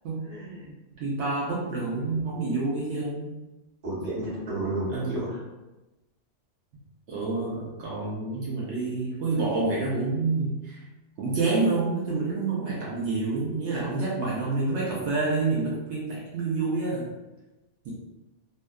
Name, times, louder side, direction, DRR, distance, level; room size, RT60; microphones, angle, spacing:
voice 1, 0.3-0.8 3.8-5.4, right 1 dB, 35° right, -9 dB, 1.0 m, -32 dB
voice 2, 1.0-3.3 4.9-5.3 7.1-10.8 11.2-17.1 17.8-17.9, right 3 dB, 75° right, -6 dB, 0.9 m, -28 dB
2.6 x 2.1 x 2.2 m, 1.1 s
omnidirectional pair, 1.2 m